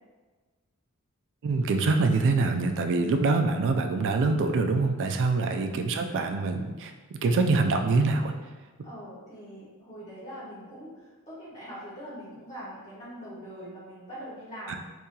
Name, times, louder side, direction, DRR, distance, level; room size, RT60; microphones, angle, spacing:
voice 1, 1.4-6.9 7.2-8.3 14.7-14.8, right 3 dB, 55° right, 5 dB, 0.3 m, -25 dB
voice 2, 5.5-6.2 8.8-14.8, equal, 30° left, -10 dB, 1.3 m, -43 dB
2.8 x 2.7 x 3.7 m, 1.3 s
head